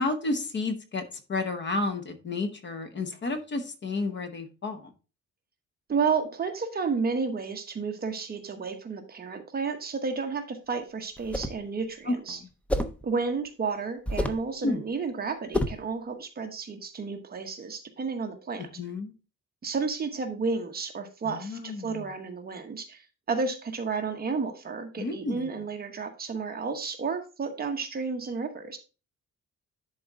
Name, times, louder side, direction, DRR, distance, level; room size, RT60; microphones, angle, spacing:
voice 1, 0.0-4.9 12.1-12.5 14.6-14.8 18.8-19.1 21.2-22.1 25.0-25.5, left 3 dB, 40° left, 0.9 m, -31 dB
voice 2, 5.9-12.4 13.0-18.7 19.6-23.0 23.3-28.8, right 5 dB, 30° right, 1.0 m, -31 dB
sound 1, 11.2-11.6 12.7-13.0 14.1-14.5 15.5-15.9, left 1 dB, 5° left, 0.5 m, -28 dB
10.5 x 4.3 x 3.6 m
wide cardioid pair, 180°, 30 cm